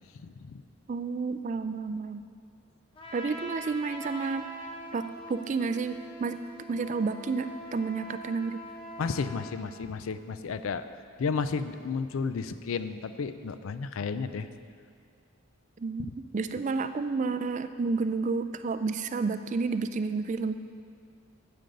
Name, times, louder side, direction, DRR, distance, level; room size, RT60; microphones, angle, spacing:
voice 1, 0.2-0.6 9.0-10.8 11.2-14.5, left 5 dB, 80° left, 12 dB, 0.4 m, -32 dB
voice 2, 0.9-2.2 3.1-4.5 4.9-6.4 6.7-8.6 15.8-20.5, right 4 dB, 35° right, 10 dB, 0.3 m, -30 dB
Trumpet, 2.9-9.6, equal, 25° left, 1.0 m, -43 dB
9.2 x 5.2 x 7.7 m, 2.2 s
head